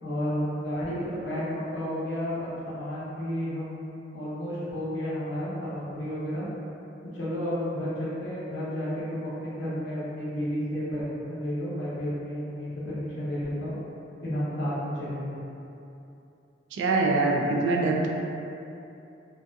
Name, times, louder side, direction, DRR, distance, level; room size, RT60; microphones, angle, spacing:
voice 1, 0.0-6.5 7.1-13.7 14.2-15.4, equal, 65° left, -8 dB, 0.7 m, -32 dB
voice 2, 16.7-18.1, right 3 dB, 70° right, 0 dB, 0.3 m, -24 dB
2.5 x 2.2 x 2.5 m, 2.8 s
head